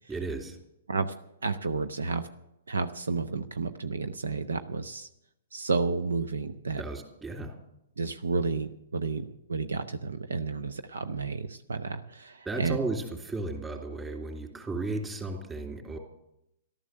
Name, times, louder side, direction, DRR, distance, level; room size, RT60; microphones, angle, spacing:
voice 1, 0.1-0.6 6.8-7.6 12.4-16.0, right 3 dB, 15° right, 2 dB, 3.3 m, -34 dB
voice 2, 1.4-2.2 2.7-5.1 5.5-6.8 8.0-12.8, right 4 dB, 80° right, 10 dB, 0.7 m, -31 dB
14.5 x 12.5 x 6.5 m, 0.82 s
figure-of-eight pair, 120°, 0 cm